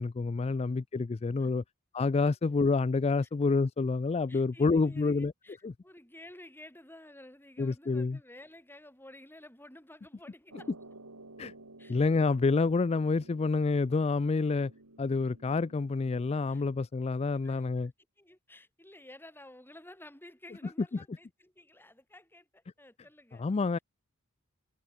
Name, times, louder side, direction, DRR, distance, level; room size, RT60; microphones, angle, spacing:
voice 1, 0.0-1.6 1.9-5.3 5.6-5.7 7.6-8.2 11.4-11.5 11.9-14.7 15.0-17.9 20.9-21.0 23.4-23.8, left 4 dB, 25° left, 0.3 m, -28 dB
voice 2, 4.3-5.6 5.8-10.7 11.8-12.0 16.5-16.6 17.4-17.6 18.2-23.5, left 1 dB, 10° left, 6.5 m, -52 dB
sound 1, 10.5-16.7, right 2 dB, 90° right, 3.6 m, -53 dB
head